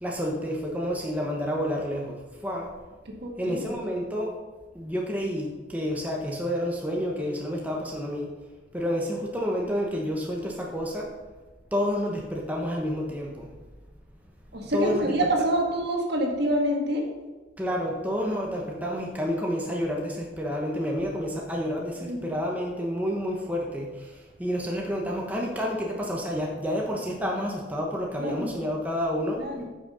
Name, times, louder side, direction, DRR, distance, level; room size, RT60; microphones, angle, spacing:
voice 1, 0.0-2.7 3.4-4.3 4.7-8.3 8.7-11.1 11.7-13.5 14.7-15.1 17.6-23.9 24.4-29.4, equal, 10° right, -1 dB, 1.0 m, -29 dB
voice 2, 3.1-3.7 14.5-17.1 22.0-22.2 28.2-28.6 29.4-29.6, right 1 dB, 55° right, 1 dB, 1.8 m, -27 dB
9.0 x 6.4 x 5.5 m, 1.3 s
head